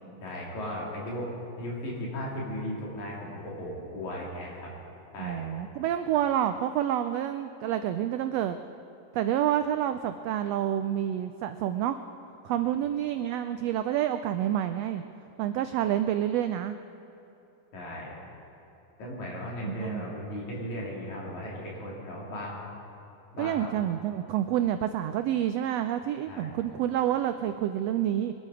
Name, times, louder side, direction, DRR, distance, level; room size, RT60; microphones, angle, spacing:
voice 1, 0.2-4.7 5.1-5.5 17.7-18.1 19.0-22.7 23.3-23.7 26.3-26.6, equal, 70° left, -4 dB, 4.5 m, -36 dB
voice 2, 5.2-8.6 9.1-12.0 12.4-15.0 15.4-16.8 19.6-20.1 23.4-28.3, right 11 dB, 85° right, 9 dB, 1.4 m, -28 dB
23.0 x 12.5 x 4.9 m, 3.0 s
omnidirectional pair, 3.5 m